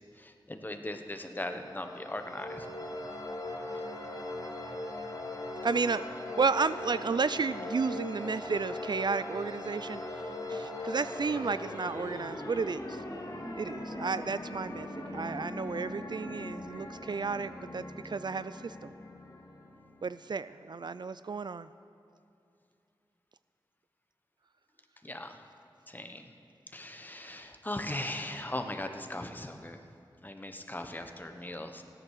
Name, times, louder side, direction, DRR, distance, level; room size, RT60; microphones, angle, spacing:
voice 1, 0.2-2.6 10.8-10.9 25.0-25.4 25.9-26.3 26.7-29.8 30.2-31.8, left 1 dB, 20° left, 6 dB, 1.1 m, -39 dB
sound 1, 1.5-20.1, left 1 dB, 45° left, 2.2 m, -40 dB
voice 2, 5.6-10.0 10.5-13.0 13.6-18.9 20.0-21.7, right 4 dB, 60° right, 14 dB, 0.4 m, -32 dB
16.5 x 9.7 x 6.6 m, 2.5 s
wide cardioid pair, 75°, 9 cm